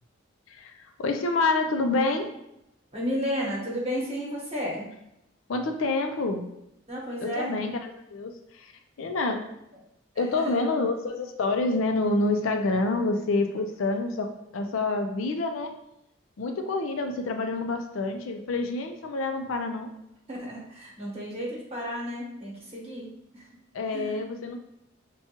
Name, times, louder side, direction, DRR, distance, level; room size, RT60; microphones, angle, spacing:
voice 1, 0.5-2.3 5.5-6.5 7.2-8.7 9.0-9.5 10.2-15.7 16.4-19.9 23.7-24.6, left 3 dB, 70° left, 5 dB, 0.4 m, -27 dB
voice 2, 2.9-4.9 6.9-7.5 10.1-10.6 20.3-23.5 23.9-24.2, equal, 30° right, -4 dB, 1.1 m, -33 dB
5.6 x 2.3 x 2.9 m, 0.83 s
head